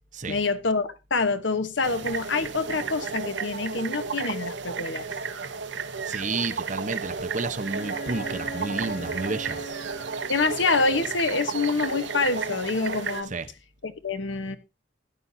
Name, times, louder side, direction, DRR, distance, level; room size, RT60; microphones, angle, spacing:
voice 1, 0.3-5.1 10.3-13.3 13.8-14.6, left 3 dB, 85° left, 1.1 m, -26 dB
sound 1, 1.8-13.2, right 5 dB, 75° right, 0.9 m, -33 dB
voice 2, 6.0-9.7 13.2-13.5, right 3 dB, 40° right, 1.0 m, -31 dB
Bowed string instrument, 7.6-11.1, right 1 dB, 60° left, 0.9 m, -41 dB
15.5 x 11.0 x 2.7 m
head